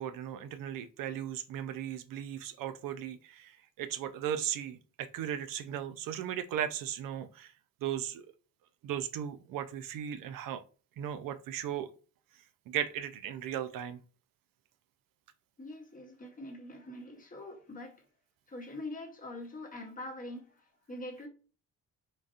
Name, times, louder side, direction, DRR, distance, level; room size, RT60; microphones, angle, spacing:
voice 1, 0.0-3.5 3.8-7.5 7.8-8.3 8.8-10.6 11.0-11.9 12.7-14.0, right 10 dB, 85° right, 0.5 m, -36 dB
voice 2, 15.6-18.0 18.5-21.3, left 1 dB, 25° left, 0.9 m, -44 dB
3.9 x 2.4 x 2.4 m
cardioid pair, 125°, 32 cm